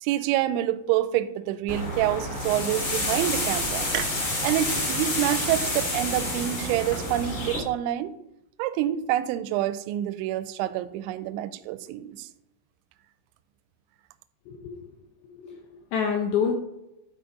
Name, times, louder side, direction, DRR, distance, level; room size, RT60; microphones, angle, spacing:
voice 1, 0.0-4.2 4.4-8.1 8.6-12.3, right 13 dB, 85° right, 13 dB, 2.8 m, -27 dB
sound 1, 1.7-7.6, left 1 dB, 35° left, 2.5 m, -29 dB
voice 2, 14.5-14.9 15.4-16.6, left 6 dB, 80° left, 2 dB, 2.2 m, -27 dB
12.0 x 4.3 x 4.8 m, 0.89 s
omnidirectional pair, 5.5 m